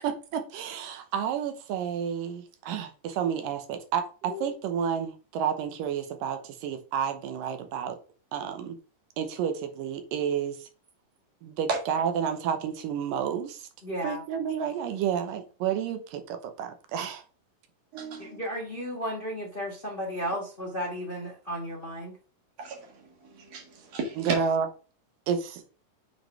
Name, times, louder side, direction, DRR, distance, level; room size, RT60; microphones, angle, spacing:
voice 1, 0.0-8.0 8.3-8.8 9.2-10.7 11.4-13.7 14.0-17.2 24.2-24.7 25.3-25.6, right 7 dB, 85° right, 2.6 m, -30 dB
voice 2, 13.8-14.2 18.2-22.2, equal, 40° left, 0.7 m, -34 dB
voice 3, 17.9-18.4 22.6-24.4, right 4 dB, 55° right, 2.6 m, -34 dB
7.0 x 4.2 x 4.5 m
omnidirectional pair, 3.9 m